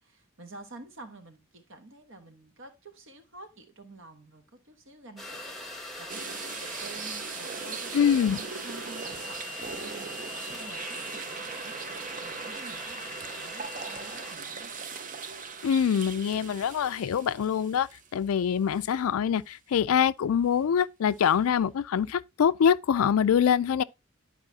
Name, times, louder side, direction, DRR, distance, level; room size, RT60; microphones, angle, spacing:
voice 1, 0.0-5.6 6.0-11.7 12.2-14.7, right 2 dB, 60° right, 1.2 m, -49 dB
sound 1, 5.2-14.4, left 1 dB, ahead, 1.2 m, -41 dB
sound 2, 6.1-18.3 18.7-18.9 21.2-21.3, right 5 dB, 35° right, 0.6 m, -39 dB
voice 2, 7.9-8.4 15.6-23.8, left 8 dB, 75° left, 0.4 m, -24 dB
11.5 x 4.8 x 2.7 m
head